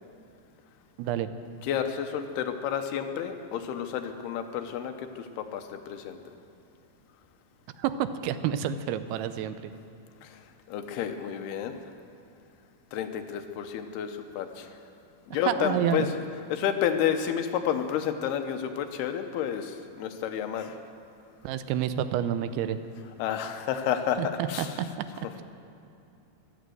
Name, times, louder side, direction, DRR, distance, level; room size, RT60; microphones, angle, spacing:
voice 1, 1.0-1.3 7.8-9.6 15.5-16.1 21.4-22.8 24.2-24.7, right 10 dB, 90° right, 11 dB, 2.7 m, -28 dB
voice 2, 1.6-6.2 10.2-10.4 10.7-11.7 12.9-14.7 15.3-16.1 16.5-20.8 23.2-24.8, left 9 dB, 85° left, 7 dB, 2.9 m, -30 dB
15.0 x 12.0 x 7.8 m, 2.7 s
omnidirectional pair, 4.5 m